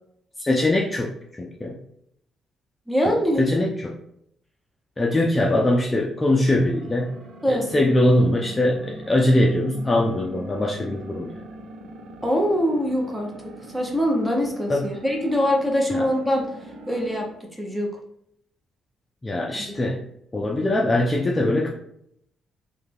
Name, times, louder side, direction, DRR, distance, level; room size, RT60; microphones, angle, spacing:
voice 1, 0.4-1.8 3.1-3.9 5.0-7.2 7.5-11.3 14.7-14.9 15.9-16.1 19.2-20.0 20.3-21.7, left 1 dB, 20° left, -1 dB, 0.4 m, -22 dB
voice 2, 2.9-3.5 7.4-7.7 12.2-16.4 16.9-17.9, equal, 5° right, 0 dB, 0.8 m, -23 dB
sound 1, 6.5-17.4, right 2 dB, 80° right, 0.5 m, -42 dB
3.2 x 2.3 x 3.4 m, 0.72 s
cardioid pair, 90°, 0 cm